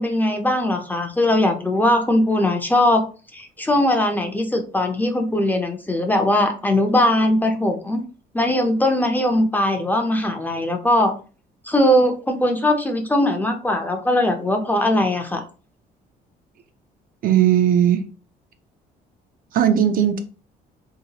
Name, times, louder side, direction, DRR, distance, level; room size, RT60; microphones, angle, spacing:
voice 1, 0.0-3.0 3.3-8.0 8.3-11.1 11.6-15.4, left 1 dB, 10° left, 4 dB, 0.5 m, -20 dB
voice 2, 17.2-18.0 19.5-20.2, right 10 dB, 55° right, 7 dB, 0.5 m, -17 dB
3.0 x 2.8 x 2.8 m, 0.37 s
cardioid pair, 110°, 17 cm